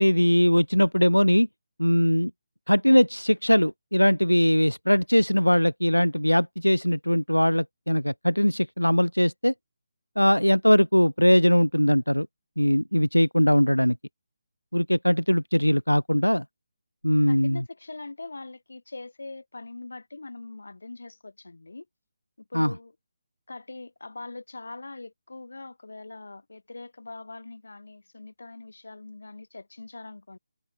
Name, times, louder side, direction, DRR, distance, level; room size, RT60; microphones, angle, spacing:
voice 1, 0.0-1.5 1.8-2.3 2.7-9.5 10.2-12.3 12.6-14.0 14.7-16.4 17.0-17.6 22.5-22.7, equal, 90° left, 0.5 m, -21 dB
voice 2, 17.3-21.9 22.5-22.9 23.5-30.4, left 3 dB, 65° left, 2.6 m, -42 dB
figure-of-eight pair, 150°, 0 cm